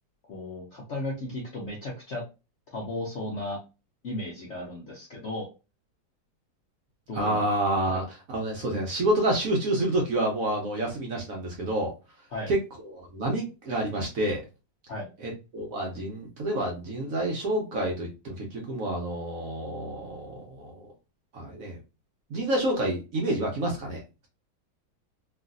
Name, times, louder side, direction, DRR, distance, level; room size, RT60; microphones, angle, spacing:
voice 1, 0.3-2.2 2.7-3.6 4.0-5.5 7.1-7.4 7.9-8.0 12.3-12.5 14.9-15.1, left 1 dB, 60° left, -3 dB, 0.7 m, -35 dB
voice 2, 7.1-11.9 12.5-12.6 12.9-14.4 15.2-20.9 21.3-21.8 22.3-24.3, right 1 dB, 60° right, -1 dB, 1.0 m, -28 dB
3.1 x 2.5 x 2.4 m, 0.30 s
omnidirectional pair, 2.0 m